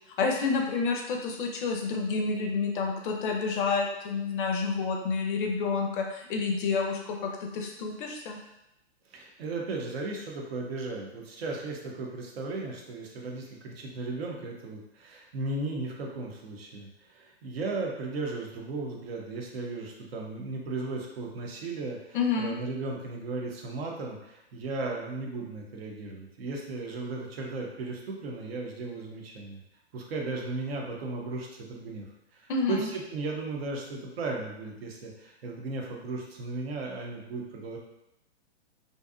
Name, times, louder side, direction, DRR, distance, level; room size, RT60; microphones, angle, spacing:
voice 1, 0.2-8.4 22.1-22.5 32.5-32.9, left 4 dB, 50° left, 2 dB, 0.5 m, -29 dB
voice 2, 9.0-29.6 29.9-32.1 32.3-37.8, right 3 dB, 60° right, 0 dB, 0.7 m, -36 dB
2.6 x 2.3 x 2.4 m, 0.87 s
hypercardioid pair, 130°, 34 cm